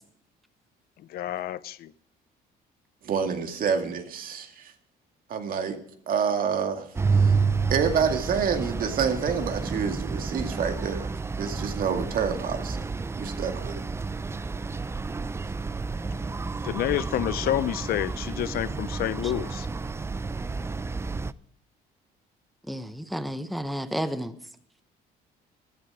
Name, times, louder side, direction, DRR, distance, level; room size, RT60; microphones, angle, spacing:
voice 1, 1.0-1.9 16.6-19.7, left 12 dB, 65° left, 0.7 m, -29 dB
voice 2, 3.0-4.7 5.3-5.8 6.1-6.9 7.2-7.3 7.7-11.1 11.4-12.9 13.2-13.8, right 6 dB, 55° right, 2.2 m, -27 dB
sound 1, 6.9-21.3, right 4 dB, 15° right, 0.5 m, -30 dB
voice 3, 22.7-24.4, equal, ahead, 0.9 m, -31 dB
14.5 x 12.5 x 4.8 m
cardioid pair, 110°, 17 cm